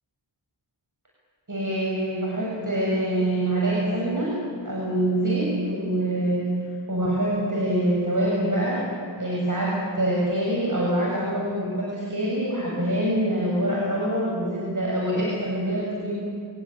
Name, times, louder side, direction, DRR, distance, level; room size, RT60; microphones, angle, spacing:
voice 1, 1.5-4.3 4.6-6.5 6.9-8.8 9.2-16.1, right 1 dB, 40° right, -4 dB, 7.1 m, -25 dB
27.0 x 17.0 x 9.8 m, 2.4 s
cardioid pair, 45°, 47 cm